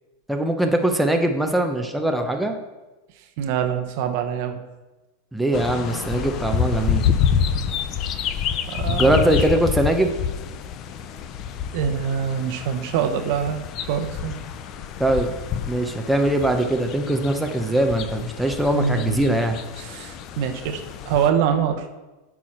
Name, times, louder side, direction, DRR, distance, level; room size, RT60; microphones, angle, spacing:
voice 1, 0.3-2.6 5.3-7.1 8.9-10.1 15.0-15.4 15.7-19.6, right 1 dB, ahead, 3 dB, 0.8 m, -21 dB
voice 2, 3.4-4.6 8.7-9.4 11.7-14.4 18.7-19.3 19.8-21.9, right 8 dB, 60° right, 7 dB, 0.9 m, -25 dB
sound 1, 5.5-21.3, left 7 dB, 40° left, 0.6 m, -28 dB
8.5 x 4.8 x 5.9 m, 1.1 s
hypercardioid pair, 120°, 0 cm